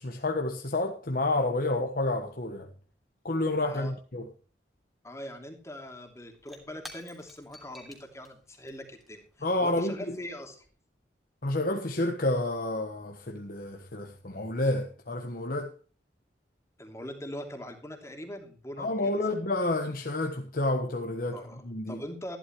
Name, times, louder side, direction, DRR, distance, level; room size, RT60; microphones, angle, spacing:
voice 1, 0.0-2.7 3.2-4.3 9.4-10.2 11.4-15.7 18.8-21.4 21.6-22.0, left 2 dB, 55° left, 1.3 m, -29 dB
voice 2, 5.0-10.7 16.8-19.2 21.3-22.4, left 1 dB, 15° left, 2.7 m, -42 dB
Shatter / Crushing, 6.2-10.7, equal, ahead, 3.0 m, -52 dB
15.0 x 12.0 x 3.1 m
head